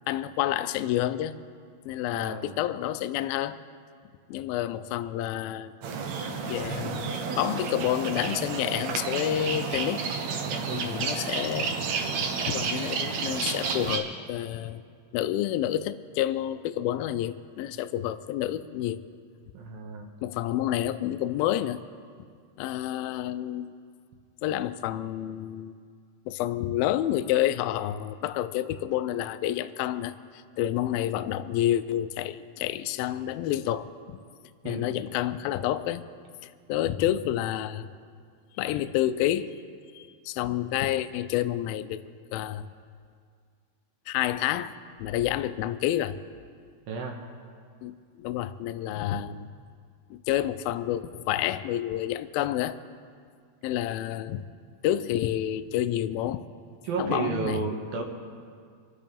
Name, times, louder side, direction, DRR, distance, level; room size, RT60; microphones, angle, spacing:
voice 1, 0.1-1.4 1.9-3.6 4.3-5.7 6.5-10.0 10.7-11.7 12.5-14.8 15.1-19.0 20.2-21.8 22.6-23.8 24.4-25.8 26.3-34.2 34.6-36.1 36.4-37.9 38.6-39.5 39.9-42.0 42.3-42.7 44.1-44.7 45.0-46.2 47.8-49.5 50.1-52.8 53.6-54.4 54.8-56.4 57.0-57.6, left 12 dB, 90° left, 11 dB, 2.1 m, -29 dB
voice 2, 2.1-2.6 10.4-11.0 19.5-20.1 34.6-34.9 46.9-47.2 56.8-58.0, right 5 dB, 70° right, 1 dB, 2.8 m, -33 dB
sound 1, 5.8-14.0, right 5 dB, 90° right, 1.5 m, -31 dB
25.5 x 12.5 x 3.5 m, 2.1 s
omnidirectional pair, 4.8 m